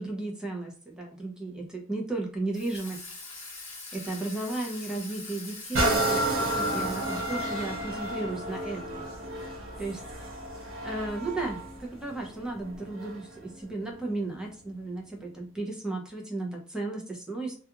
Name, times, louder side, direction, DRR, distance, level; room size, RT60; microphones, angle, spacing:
voice 1, 0.0-3.0 3.3-3.4 3.9-9.0 9.8-10.0 10.8-17.5, right 2 dB, 5° right, 0 dB, 0.6 m, -34 dB
Water tap faucet / Sink (filling or washing), 2.5-7.8, left 3 dB, 30° left, 1.0 m, -43 dB
sound 1, 5.7-13.4 13.9-14.0, right 1 dB, 80° right, 1.1 m, -31 dB
2.4 x 2.4 x 2.8 m, 0.43 s
head